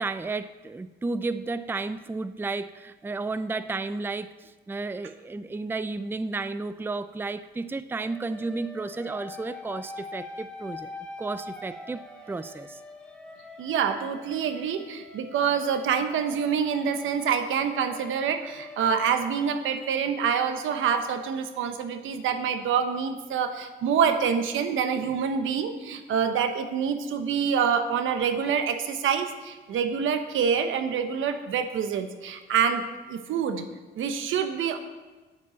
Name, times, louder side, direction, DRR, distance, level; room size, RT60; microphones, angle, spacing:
voice 1, 0.0-10.9 11.2-12.8, right 3 dB, 10° right, 13 dB, 0.5 m, -32 dB
sound 1, 7.9-19.8, left 2 dB, 5° left, 1.6 m, -44 dB
voice 2, 13.6-32.8 33.1-33.7 34.0-34.8, right 7 dB, 80° right, 8 dB, 1.1 m, -26 dB
9.6 x 9.1 x 7.1 m, 1.3 s
cardioid pair, 90°, 20 cm